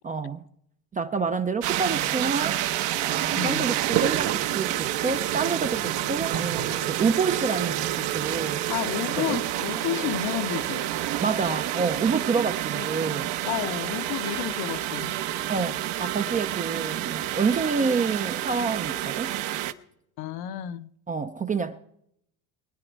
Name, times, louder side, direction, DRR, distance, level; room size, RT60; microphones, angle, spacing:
voice 1, 0.0-0.4 0.9-2.6 3.1-8.6 9.3-9.4 11.2-13.3 15.5-19.4 21.1-21.8, right 5 dB, 20° right, 0.4 m, -28 dB
sound 1, 1.6-19.7, right 13 dB, 65° right, 1.0 m, -28 dB
voice 2, 3.4-3.7 8.7-10.9 12.7-15.2 20.2-20.9, left 12 dB, 55° left, 0.8 m, -31 dB
22.0 x 9.8 x 4.5 m
cardioid pair, 130°, 46 cm